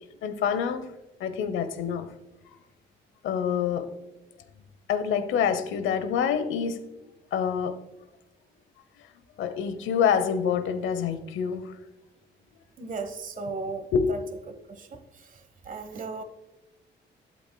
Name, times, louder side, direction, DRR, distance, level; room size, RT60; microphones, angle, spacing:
voice 1, 0.2-0.9 1.2-2.1 3.2-3.9 4.9-6.9 7.3-7.8 9.4-11.8 13.9-14.1, left 7 dB, 80° left, 11 dB, 0.9 m, -26 dB
voice 2, 12.8-14.2 14.7-16.2, right 3 dB, 40° right, 6 dB, 1.2 m, -36 dB
12.0 x 8.4 x 2.3 m, 0.99 s
cardioid pair, 90°, 20 cm